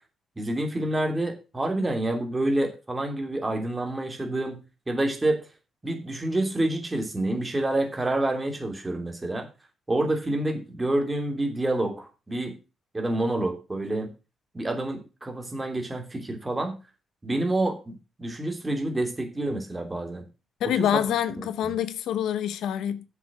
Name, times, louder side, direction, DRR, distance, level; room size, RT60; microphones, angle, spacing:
voice 1, 0.4-4.6 4.9-5.5 5.8-9.5 9.9-12.5 12.9-14.1 14.5-16.8 17.2-20.2 20.6-20.9 21.6-21.7, right 1 dB, 15° right, 2.9 m, -28 dB
voice 2, 20.6-23.1, left 10 dB, 85° left, 0.8 m, -26 dB
7.5 x 6.8 x 6.1 m
cardioid pair, 110°, 0 cm